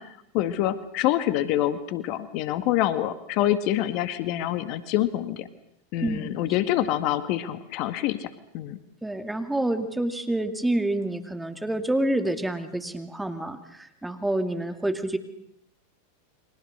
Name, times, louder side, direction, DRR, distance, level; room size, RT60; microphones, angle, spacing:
voice 1, 0.0-5.5 5.9-8.8, left 13 dB, 50° left, 11 dB, 1.8 m, -26 dB
voice 2, 6.0-6.3 9.0-15.2, right 1 dB, 5° right, 7 dB, 2.4 m, -28 dB
30.0 x 24.0 x 6.7 m, 0.73 s
hypercardioid pair, 95°, 0 cm